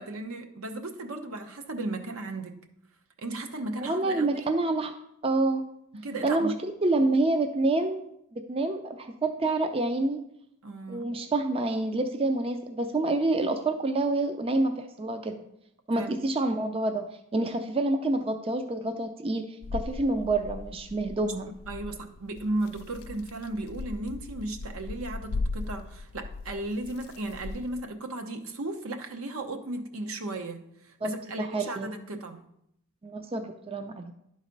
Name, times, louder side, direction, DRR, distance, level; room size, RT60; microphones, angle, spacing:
voice 1, 0.0-2.6 3.2-4.5 5.9-6.5 10.6-11.1 16.0-16.1 21.7-32.4, right 2 dB, 75° right, 5 dB, 1.0 m, -35 dB
voice 2, 3.8-4.9 5.2-5.7 6.2-10.2 10.9-15.4 15.9-21.5 31.0-31.1 31.4-31.9 33.0-34.1, right 2 dB, 25° right, 6 dB, 0.4 m, -28 dB
sound 1, 19.6-27.8, left 3 dB, 75° left, 0.4 m, -38 dB
11.0 x 4.1 x 5.2 m, 0.76 s
head